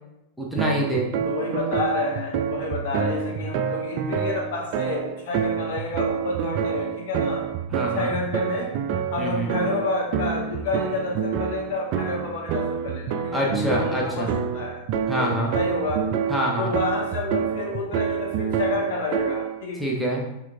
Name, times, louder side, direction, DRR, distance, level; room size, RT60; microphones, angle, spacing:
voice 1, 0.4-1.1 7.7-8.1 9.2-9.5 13.3-14.3 15.1-15.5 16.3-16.7 19.8-20.3, equal, ahead, -3 dB, 0.7 m, -25 dB
sound 1, 0.6-19.6, right 7 dB, 45° right, 0.3 m, -28 dB
voice 2, 1.3-7.4 7.9-8.7 9.1-14.8 15.2-16.0 16.6-19.8, left 3 dB, 50° left, -1 dB, 1.2 m, -29 dB
6.3 x 3.4 x 2.3 m, 0.93 s
figure-of-eight pair, 90°, 0 cm